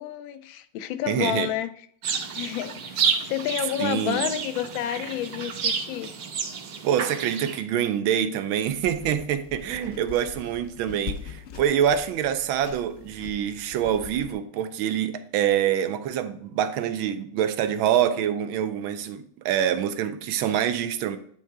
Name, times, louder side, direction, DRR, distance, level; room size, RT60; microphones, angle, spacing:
voice 1, 0.0-1.7 2.3-6.1, left 11 dB, 80° left, 1.3 m, -30 dB
voice 2, 1.1-1.5 3.8-4.2 6.8-21.2, right 9 dB, 85° right, 1.4 m, -25 dB
sound 1, 2.0-7.6, right 6 dB, 70° right, 1.5 m, -30 dB
sound 2, 8.7-14.3, left 6 dB, 65° left, 0.7 m, -42 dB
9.2 x 3.7 x 4.6 m
omnidirectional pair, 2.2 m